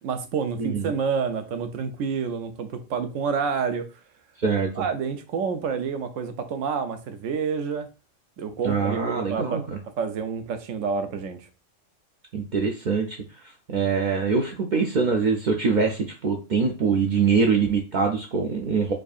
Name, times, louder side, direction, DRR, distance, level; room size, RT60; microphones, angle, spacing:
voice 1, 0.0-3.9 4.8-7.9 8.4-9.6 10.0-11.5, right 6 dB, 85° right, 8 dB, 1.0 m, -28 dB
voice 2, 0.6-0.9 4.4-4.8 8.6-9.8 12.3-18.9, right 5 dB, 60° right, 1 dB, 0.5 m, -24 dB
4.7 x 2.6 x 2.4 m, 0.32 s
omnidirectional pair, 1.3 m